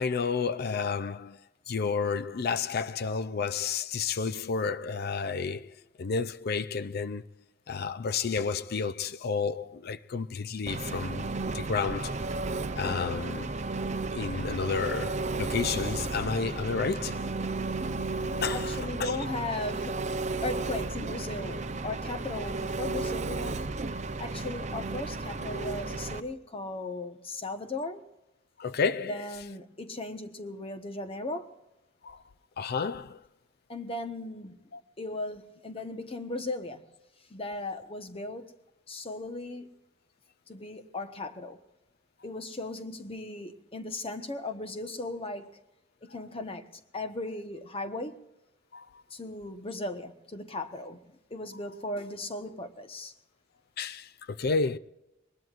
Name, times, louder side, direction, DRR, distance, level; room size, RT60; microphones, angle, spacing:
voice 1, 0.0-1.4 1.7-7.2 7.7-12.2 12.8-13.5 14.1-17.2 18.4-19.2 28.6-29.3 32.0-32.2 32.6-33.2 34.7-34.8 48.7-48.9 53.8-54.8, left 5 dB, 55° left, 0.5 m, -31 dB
Engine, 10.7-26.2, right 3 dB, 40° right, 0.7 m, -33 dB
voice 2, 18.5-20.0 20.4-23.6 24.2-28.0 29.1-31.5 33.7-34.6 35.0-36.8 37.3-38.5 38.9-39.7 40.5-41.6 42.2-45.6 46.0-46.7 46.9-48.2 49.1-51.0 51.3-53.1, left 2 dB, 30° left, 1.2 m, -37 dB
22.5 x 20.0 x 2.5 m
head